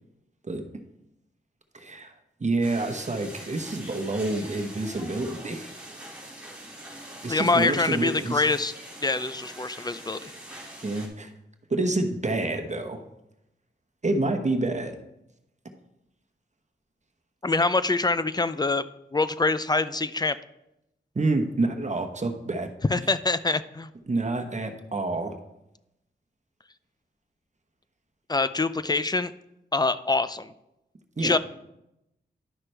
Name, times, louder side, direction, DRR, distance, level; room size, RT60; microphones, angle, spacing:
voice 1, 1.7-2.1 2.4-5.7 7.2-8.4 10.8-11.3 11.7-13.0 14.0-14.9 21.1-22.7 24.1-25.3 31.2-31.4, right 2 dB, 40° right, 5 dB, 1.0 m, -28 dB
sound 1, 2.6-11.1, right 1 dB, 5° right, 2.5 m, -43 dB
voice 2, 7.3-8.7 9.0-10.3 17.4-18.8 19.1-20.4 22.9-23.9 28.3-29.3 29.7-30.5 31.2-31.4, left 3 dB, 20° left, 14 dB, 0.4 m, -25 dB
11.0 x 5.9 x 3.3 m, 0.86 s
cardioid pair, 55°, 19 cm